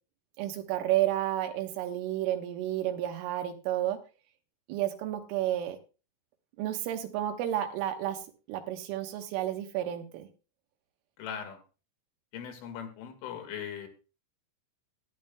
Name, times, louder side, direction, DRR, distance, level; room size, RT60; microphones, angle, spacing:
voice 1, 0.4-4.0 4.7-5.8 6.6-8.2 8.5-10.3, right 13 dB, 80° right, 5 dB, 3.6 m, -31 dB
voice 2, 11.2-11.6 12.3-13.9, left 8 dB, 80° left, 5 dB, 4.2 m, -39 dB
17.5 x 10.5 x 2.2 m, 0.33 s
omnidirectional pair, 5.6 m